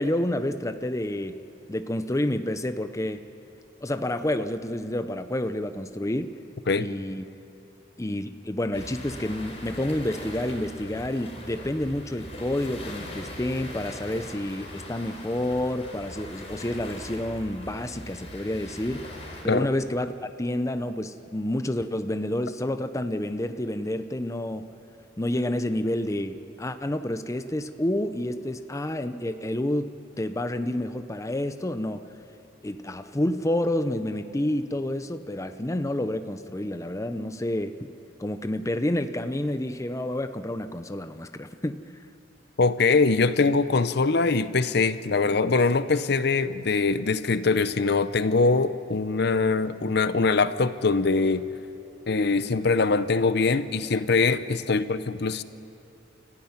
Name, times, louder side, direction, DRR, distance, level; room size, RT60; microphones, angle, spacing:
voice 1, 0.0-1.4 1.7-3.2 3.8-6.3 6.8-7.3 8.0-19.1 19.4-24.7 25.2-32.2 32.6-37.9 38.2-41.8, left 1 dB, 15° left, 9 dB, 0.7 m, -29 dB
sound 1, 8.7-19.4, left 1 dB, 35° left, 4.6 m, -41 dB
voice 2, 42.6-51.5 52.1-55.4, left 4 dB, 65° left, 13 dB, 0.7 m, -23 dB
30.0 x 14.5 x 9.6 m, 2.7 s
head